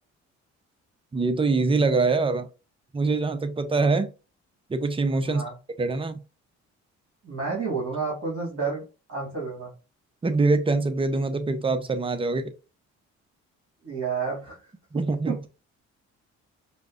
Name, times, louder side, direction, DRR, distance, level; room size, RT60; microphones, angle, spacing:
voice 1, 1.1-2.5 2.9-4.1 4.7-5.4 5.8-6.2 10.2-12.5 14.9-15.4, right 3 dB, 20° right, 9 dB, 0.5 m, -24 dB
voice 2, 5.2-5.5 7.2-8.8 9.1-9.7 13.8-14.6, right 4 dB, 50° right, -4 dB, 1.6 m, -30 dB
5.0 x 2.0 x 2.4 m, 0.31 s
cardioid pair, 90°, 30 cm